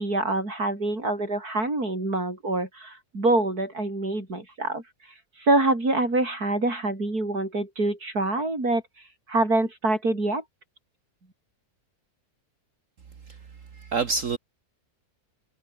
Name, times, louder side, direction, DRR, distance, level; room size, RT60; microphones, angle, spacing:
voice 1, 0.0-4.8 5.4-8.8 9.3-10.4, right 2 dB, 75° right, 7.0 m, -25 dB
voice 2, 13.7-14.4, right 4 dB, 55° right, 1.7 m, -27 dB
omnidirectional pair, 1.6 m